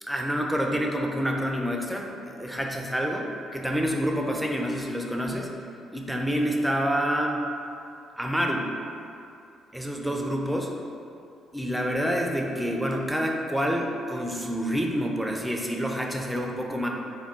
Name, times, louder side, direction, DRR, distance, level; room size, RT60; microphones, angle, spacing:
voice 1, 0.0-5.6 5.9-7.4 8.2-8.7 9.7-10.7 11.5-16.9, equal, 5° right, 1 dB, 0.5 m, -28 dB
3.5 x 2.3 x 4.4 m, 2.6 s
figure-of-eight pair, 45°, 0 cm